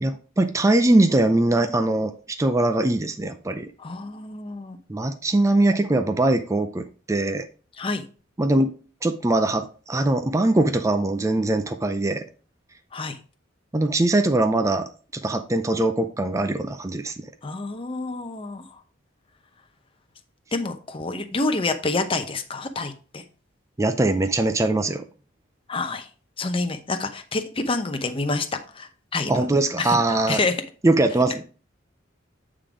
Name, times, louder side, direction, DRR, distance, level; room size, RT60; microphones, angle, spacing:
voice 1, 0.0-3.7 4.9-7.5 8.4-8.7 9.0-12.2 13.7-17.2 23.8-25.0 29.3-30.4 30.8-31.4, right 2 dB, 15° right, 7 dB, 0.4 m, -22 dB
voice 2, 3.8-4.8 7.8-8.1 12.9-13.2 17.4-18.8 20.5-23.2 25.7-26.1 26.4-28.5 28.7-29.4 29.8-30.0 30.3-30.6, left 3 dB, 25° left, 7 dB, 0.8 m, -28 dB
8.7 x 3.8 x 4.9 m, 0.38 s
head